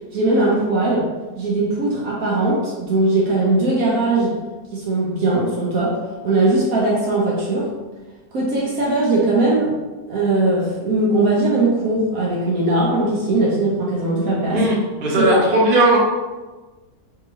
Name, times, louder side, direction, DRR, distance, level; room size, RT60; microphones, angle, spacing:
voice 1, 0.1-4.4 4.7-6.0 6.2-7.7 8.3-9.7 10.1-14.6 15.2-15.3, right 2 dB, 60° right, -5 dB, 1.2 m, -19 dB
voice 2, 14.5-16.0, right 1 dB, 40° right, -4 dB, 0.9 m, -17 dB
3.7 x 3.7 x 3.0 m, 1.2 s
omnidirectional pair, 1.8 m